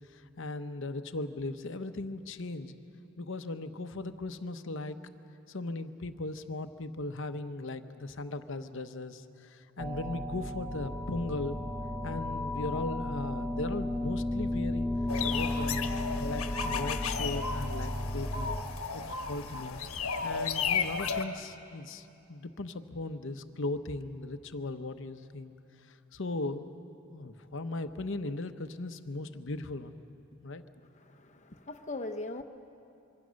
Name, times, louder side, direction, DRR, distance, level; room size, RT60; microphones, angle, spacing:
voice 1, 0.1-2.8 3.2-5.0 5.5-11.6 12.0-14.9 15.2-18.5 18.9-19.8 20.2-25.5 25.9-26.7 27.1-30.0 30.4-30.6, left 2 dB, 60° left, 9 dB, 0.9 m, -38 dB
sound 1, 9.8-18.6, left 1 dB, 10° left, 0.9 m, -34 dB
sound 2, 15.1-21.2, left 5 dB, 90° left, 1.3 m, -34 dB
voice 2, 30.9-32.4, left 2 dB, 35° left, 6 dB, 1.0 m, -40 dB
26.0 x 24.0 x 6.4 m, 2.8 s
head